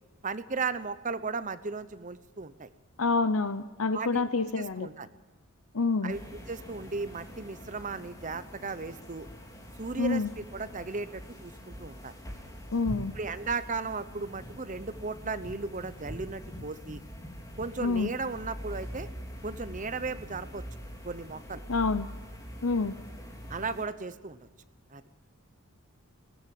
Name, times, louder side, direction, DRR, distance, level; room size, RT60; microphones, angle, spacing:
voice 1, 0.2-2.7 3.9-4.3 4.6-5.1 6.0-9.3 9.8-12.1 13.1-17.0 17.6-19.1 19.4-20.6 21.0-21.6 23.5-24.4 24.9-25.0, right 4 dB, 35° right, 13 dB, 0.9 m, -36 dB
voice 2, 3.0-4.9 5.7-6.1 10.0-10.3 12.7-13.1 17.8-18.1 21.7-22.1 22.6-22.9, left 3 dB, 70° left, 12 dB, 0.8 m, -27 dB
sound 1, 6.1-23.9, equal, 15° left, 3.3 m, -44 dB
21.0 x 18.5 x 7.6 m, 1.2 s
head